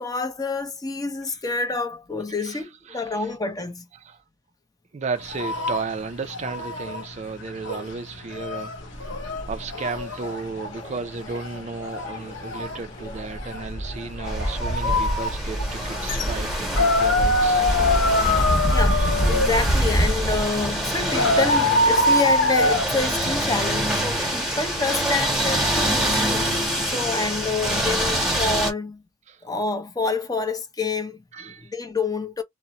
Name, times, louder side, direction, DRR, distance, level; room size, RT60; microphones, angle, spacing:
voice 1, 0.0-3.8 18.7-29.0 29.4-32.4, left 3 dB, 20° left, 0.6 m, -28 dB
voice 2, 2.4-3.3 4.0-4.2 4.9-9.1 9.5-17.9 18.9-19.1 23.5-23.7 29.3-29.4 31.3-31.7, right 4 dB, 35° right, 0.4 m, -34 dB
sound 1, 5.2-24.1, left 2 dB, 70° left, 0.8 m, -25 dB
sound 2, 8.8-20.4, equal, 40° left, 0.9 m, -27 dB
sound 3, 14.3-28.7, right 1 dB, ahead, 1.0 m, -26 dB
2.5 x 2.1 x 2.7 m
head